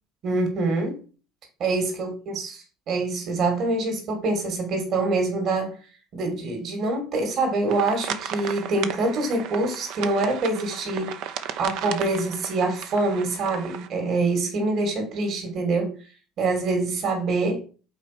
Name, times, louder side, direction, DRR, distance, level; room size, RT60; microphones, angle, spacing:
voice 1, 0.2-1.0 1.6-5.8 6.1-11.2 11.6-16.0 16.4-17.6, right 2 dB, 55° right, 2.7 m, -25 dB
sound 1, 7.7-13.9, right 9 dB, 70° right, 0.8 m, -35 dB
5.9 x 4.2 x 6.0 m
supercardioid pair, 100°, 0 cm